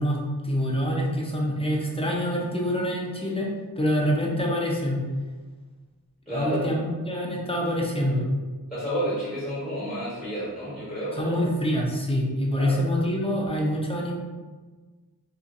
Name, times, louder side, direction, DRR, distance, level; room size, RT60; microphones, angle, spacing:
voice 1, 0.0-3.5 3.8-5.0 6.3-8.2 11.1-14.1, equal, 15° left, -2 dB, 0.6 m, -26 dB
voice 2, 6.3-6.6 8.7-11.4 12.5-12.8, equal, ahead, -10 dB, 1.5 m, -30 dB
2.9 x 2.5 x 2.5 m, 1.3 s
wide cardioid pair, 55°, 39 cm